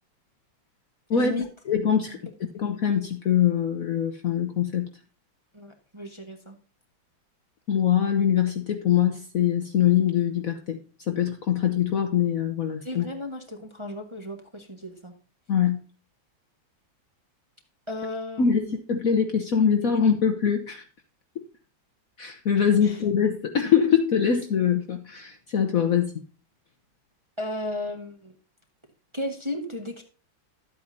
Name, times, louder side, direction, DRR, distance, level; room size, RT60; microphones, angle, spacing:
voice 1, 1.1-1.4 5.5-6.6 12.8-15.1 17.9-18.7 22.8-23.0 27.4-28.4 29.1-30.0, left 1 dB, 20° right, 1.1 m, -34 dB
voice 2, 1.7-2.2 2.5-4.9 7.7-10.8 11.1-13.1 15.5-15.8 18.4-20.8 22.2-26.1, left 8 dB, 55° left, 1.1 m, -23 dB
12.0 x 8.4 x 2.7 m
omnidirectional pair, 2.2 m